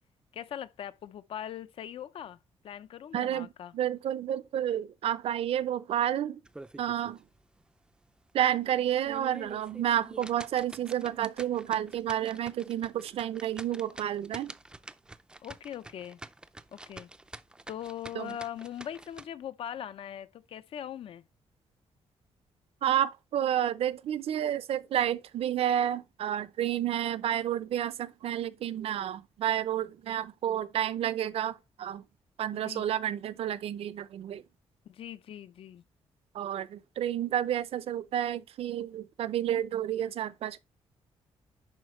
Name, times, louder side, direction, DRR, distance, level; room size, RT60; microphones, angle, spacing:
voice 1, 0.3-2.4 2.6-3.7 15.4-16.2 16.7-17.1 17.7-21.2 32.6-32.9 34.9-35.8, left 10 dB, 60° left, 0.6 m, -41 dB
voice 2, 3.1-6.4 6.8-7.2 8.3-14.5 18.1-18.4 22.8-32.0 32.4-34.4 36.3-40.6, right 11 dB, 65° right, 0.6 m, -30 dB
sound 1, 6.5-7.2 7.6-7.7 8.2-8.3 8.9-19.3, right 2 dB, 10° right, 0.4 m, -47 dB
11.0 x 4.3 x 3.2 m
wide cardioid pair, 165°, 11 cm